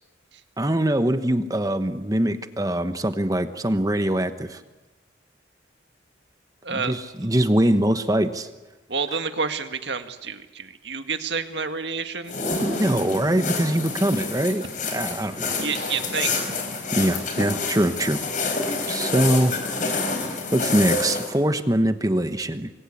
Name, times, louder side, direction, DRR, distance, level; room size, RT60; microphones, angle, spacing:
voice 1, 0.6-4.6 6.7-8.5 12.6-15.5 16.9-18.2 18.9-19.5 20.5-22.7, right 1 dB, 20° right, 10 dB, 1.0 m, -23 dB
voice 2, 6.6-6.9 8.9-12.4 15.6-16.4, right 5 dB, 65° right, 8 dB, 1.9 m, -29 dB
sound 1, 12.3-21.3, left 3 dB, 40° left, 4.6 m, -28 dB
26.5 x 22.0 x 8.5 m, 1.1 s
head